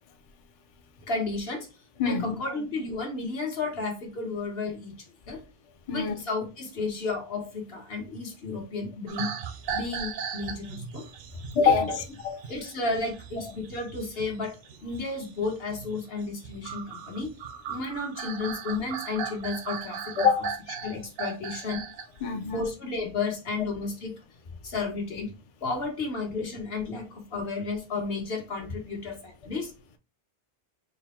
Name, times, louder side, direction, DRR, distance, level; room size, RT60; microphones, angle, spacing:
voice 1, 1.1-1.7 2.0-5.4 5.9-9.3 9.7-11.0 11.6-12.0 12.5-14.6 14.8-17.3 17.7-20.0 20.4-20.5 20.8-21.8 22.5-24.2 24.6-25.3 25.6-29.7, left 3 dB, 70° left, 1.4 m, -32 dB
voice 2, 2.0-2.4 5.9-6.2 11.5-11.9 12.2-12.4 20.2-20.5 20.8-20.9 22.2-22.7, left 6 dB, 50° left, 0.4 m, -24 dB
sound 1, 9.1-22.1 22.5-22.8, right 7 dB, 70° right, 0.7 m, -38 dB
3.8 x 2.1 x 4.2 m
omnidirectional pair, 1.0 m